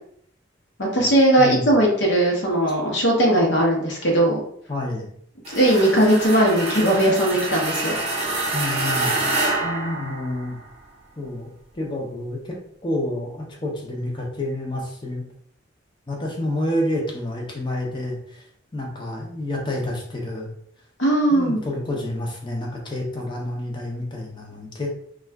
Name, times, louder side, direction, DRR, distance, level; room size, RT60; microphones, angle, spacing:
voice 1, 0.9-4.4 5.5-8.0 9.6-10.0 21.0-21.6, right 1 dB, 65° left, -1 dB, 0.8 m, -19 dB
voice 2, 4.7-5.1 8.5-9.1 9.9-10.6 11.2-11.5 11.7-12.6 12.8-15.2 16.1-18.5 18.7-20.5 21.3-24.9, left 1 dB, 25° left, -1 dB, 0.6 m, -29 dB
sound 1, 5.4-10.7, right 2 dB, 35° right, 0.8 m, -26 dB
2.4 x 2.3 x 3.3 m, 0.66 s
head